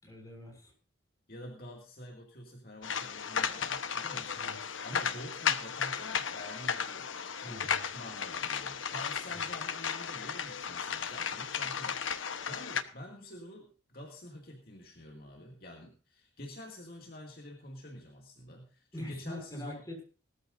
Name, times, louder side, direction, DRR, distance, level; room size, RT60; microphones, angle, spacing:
voice 1, 0.0-0.7 4.2-4.6 7.4-7.9 9.3-9.4 18.9-20.0, left 1 dB, 15° left, -1 dB, 6.7 m, -44 dB
voice 2, 1.3-4.4 4.8-7.1 7.4-19.8, left 1 dB, 50° left, 1 dB, 2.3 m, -48 dB
sound 1, 2.8-12.8, left 7 dB, 85° left, 1.1 m, -34 dB
19.5 x 14.0 x 2.7 m, 0.35 s
head